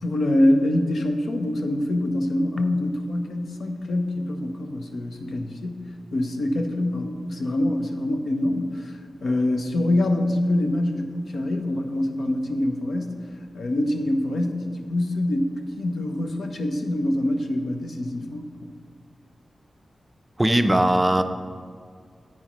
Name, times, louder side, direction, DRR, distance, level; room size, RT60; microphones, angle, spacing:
voice 1, 0.0-13.2 13.5-18.5, left 1 dB, 80° left, 5 dB, 0.9 m, -25 dB
voice 2, 20.4-21.2, right 1 dB, 15° right, 8 dB, 0.5 m, -19 dB
9.9 x 8.9 x 3.1 m, 2.1 s
wide cardioid pair, 80°, 0 cm